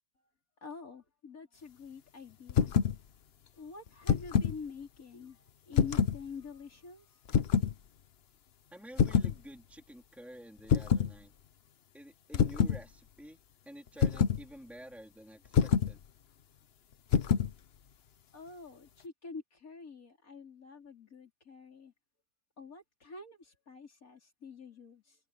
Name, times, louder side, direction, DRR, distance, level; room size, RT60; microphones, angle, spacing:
voice 1, 0.6-2.8 3.5-7.1 18.3-21.9 22.6-25.2, left 4 dB, 75° left, 4.1 m, -47 dB
sound 1, 2.5-3.0 3.9-4.6 5.7-6.2 7.3-7.7 9.0-9.4 10.7-11.1 12.3-12.8 14.0-14.4 15.5-15.9 17.1-17.5, left 7 dB, 50° left, 1.0 m, -26 dB
voice 2, 8.7-11.3 11.9-13.4 13.6-16.0, equal, ahead, 3.1 m, -50 dB
omnidirectional pair, 1.5 m